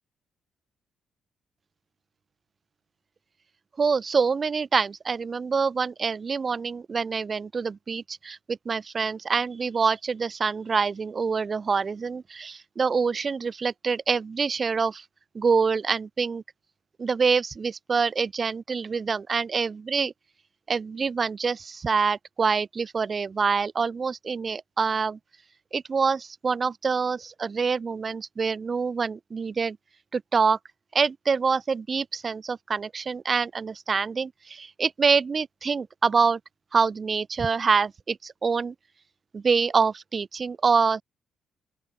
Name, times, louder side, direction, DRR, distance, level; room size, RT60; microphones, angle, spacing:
voice 1, 3.8-15.0 15.4-16.4 17.0-20.1 20.7-25.2 25.7-29.8 30.1-30.6 30.9-36.4 36.7-38.7 39.3-41.0, right 5 dB, 35° right, 1.8 m, -26 dB
open air
cardioid pair, 90°, 0 cm